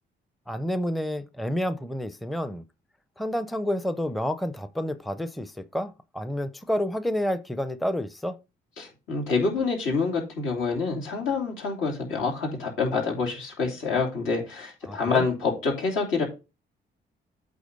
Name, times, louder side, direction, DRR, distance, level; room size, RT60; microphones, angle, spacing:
voice 1, 0.5-2.6 3.2-8.4 14.9-15.2, equal, ahead, 0.5 m, -29 dB
voice 2, 8.8-16.2, left 4 dB, 80° left, 3.1 m, -27 dB
8.4 x 4.0 x 5.2 m
cardioid pair, 90°, 20 cm